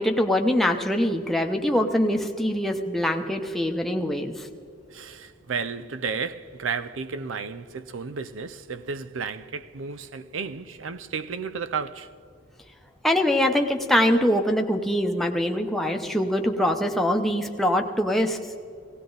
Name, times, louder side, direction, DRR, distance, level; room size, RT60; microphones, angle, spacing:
voice 1, 0.0-4.5 13.0-18.4, left 1 dB, ahead, 0.8 m, -23 dB
voice 2, 4.9-12.1, right 5 dB, 90° right, 0.6 m, -33 dB
18.0 x 17.0 x 3.9 m
head